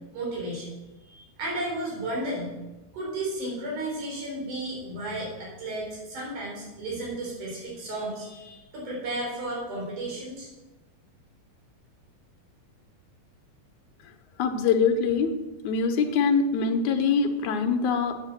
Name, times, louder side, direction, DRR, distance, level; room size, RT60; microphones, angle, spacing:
voice 1, 0.1-0.7 1.1-2.5 2.9-10.5, right 1 dB, 70° right, -4 dB, 5.6 m, -33 dB
voice 2, 14.4-15.3 15.6-18.2, left 5 dB, 70° left, 5 dB, 2.4 m, -24 dB
9.1 x 8.8 x 7.4 m, 1.1 s
omnidirectional pair, 3.7 m